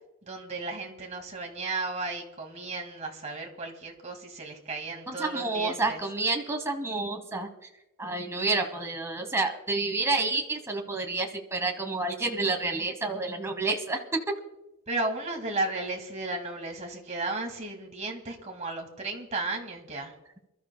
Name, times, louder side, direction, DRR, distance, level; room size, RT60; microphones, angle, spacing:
voice 1, 0.2-6.0 14.9-20.1, right 2 dB, 30° right, 2 dB, 2.1 m, -34 dB
voice 2, 5.1-7.5 8.0-14.0, right 3 dB, 15° right, 4 dB, 1.2 m, -29 dB
28.0 x 13.0 x 2.2 m, 0.93 s
head